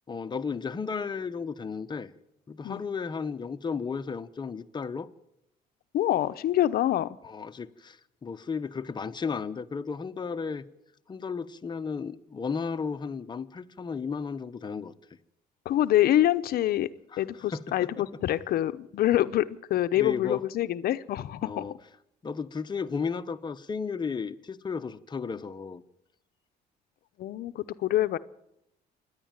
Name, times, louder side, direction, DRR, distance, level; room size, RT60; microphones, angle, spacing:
voice 1, 0.1-2.1 2.5-5.1 7.2-10.6 11.1-14.9 17.1-17.2 17.5-18.0 20.0-20.4 21.4-21.7 22.2-25.8, left 5 dB, 25° left, 1.0 m, -34 dB
voice 2, 5.9-7.2 15.6-16.9 17.2-21.8 27.2-28.2, left 13 dB, 65° left, 0.8 m, -26 dB
27.0 x 10.5 x 9.0 m
cardioid pair, 110°, 17 cm